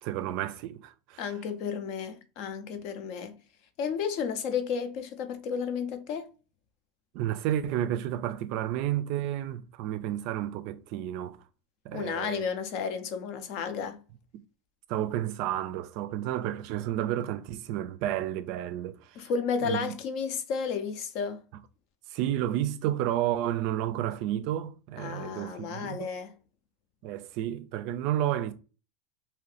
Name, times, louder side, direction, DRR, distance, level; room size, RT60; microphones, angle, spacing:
voice 1, 0.0-1.2 7.1-11.4 11.8-12.4 14.9-19.2 19.6-19.9 22.1-26.1 27.0-28.5, right 12 dB, 55° right, 0.4 m, -31 dB
voice 2, 1.2-3.4 3.8-6.3 11.9-14.0 19.2-21.4 25.0-26.4, left 6 dB, 55° left, 0.6 m, -32 dB
2.8 x 2.5 x 3.2 m
supercardioid pair, 155°, 0 cm